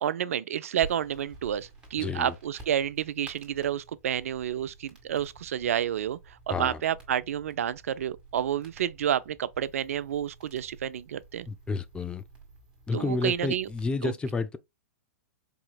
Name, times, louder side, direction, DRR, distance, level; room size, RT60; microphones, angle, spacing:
voice 1, 0.0-11.5 12.9-13.7 14.0-14.1, right 10 dB, 65° right, 0.3 m, -30 dB
sound 1, 0.8-13.9, right 3 dB, 10° right, 1.8 m, -51 dB
voice 2, 2.0-2.3 6.5-6.8 11.5-12.2 12.9-14.6, left 4 dB, 10° left, 0.4 m, -30 dB
4.8 x 2.8 x 2.3 m
figure-of-eight pair, 110°, 8 cm